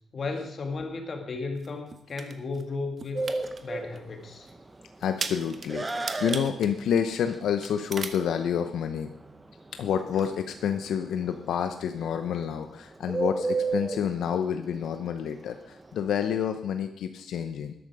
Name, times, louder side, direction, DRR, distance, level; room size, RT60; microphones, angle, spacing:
voice 1, 0.1-3.3 3.6-4.5, left 3 dB, 40° left, 3 dB, 2.2 m, -34 dB
sound 1, 1.6-2.6 3.0-3.6 4.0-4.1 4.5-4.6 5.0-7.4 7.6-8.2, right 4 dB, 35° right, 1.0 m, -36 dB
Bird, 3.1-16.1, right 3 dB, 20° right, 1.0 m, -34 dB
voice 2, 5.0-9.1 9.8-17.7, left 8 dB, 85° left, 7 dB, 0.8 m, -29 dB
13.0 x 12.0 x 4.9 m, 0.74 s
cardioid pair, 150°, 0 cm